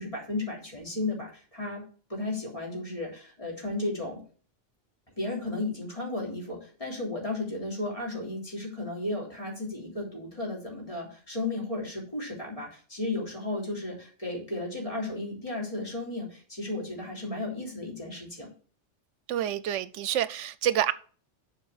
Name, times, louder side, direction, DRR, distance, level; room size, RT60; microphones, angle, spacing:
voice 1, 0.0-1.8 2.1-4.2 5.2-18.5, left 2 dB, 30° left, 3.5 m, -34 dB
voice 2, 19.3-20.9, right 11 dB, 80° right, 0.9 m, -28 dB
7.4 x 5.0 x 7.0 m
omnidirectional pair, 1.2 m